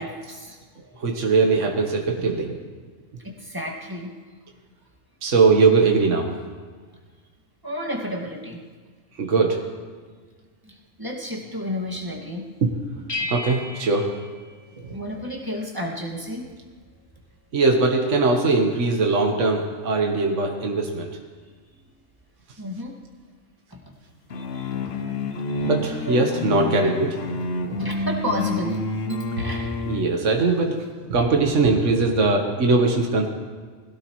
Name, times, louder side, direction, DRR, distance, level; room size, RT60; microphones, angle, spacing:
voice 1, 0.0-1.2 3.2-4.2 7.6-8.6 10.6-12.5 13.2-13.3 14.9-16.5 22.6-23.0 23.7-23.8 24.9-25.2 26.1-26.2 26.7-26.9 27.8-28.8 29.4-30.0, left 1 dB, 15° right, -2 dB, 1.9 m, -32 dB
voice 2, 1.0-2.6 5.2-6.3 9.2-9.6 12.6-12.7 13.3-14.1 14.8-14.9 17.5-21.1 25.6-27.9 29.4-29.5 29.9-30.8 31.0-33.3, right 3 dB, 65° right, 2 dB, 1.6 m, -21 dB
sound 1, 13.1-15.3, left 2 dB, 25° left, 0.6 m, -34 dB
sound 2, 24.3-30.2, left 3 dB, 55° left, 1.0 m, -29 dB
21.5 x 16.5 x 3.1 m, 1.5 s
omnidirectional pair, 1.4 m